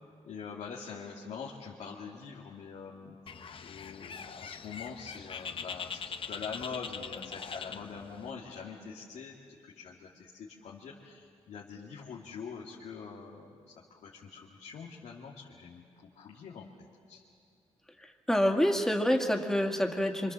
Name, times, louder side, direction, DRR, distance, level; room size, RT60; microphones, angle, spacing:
voice 1, 0.2-3.2 3.6-6.0 6.3-13.6 13.9-15.9 16.2-16.7 17.1-17.2, left 6 dB, 90° left, -3 dB, 2.2 m, -44 dB
Bird, 3.3-8.3, left 6 dB, 50° left, 0.9 m, -42 dB
voice 2, 18.3-20.3, equal, 5° left, 2 dB, 2.2 m, -27 dB
26.5 x 25.5 x 7.5 m, 2.4 s
cardioid pair, 105°, 11 cm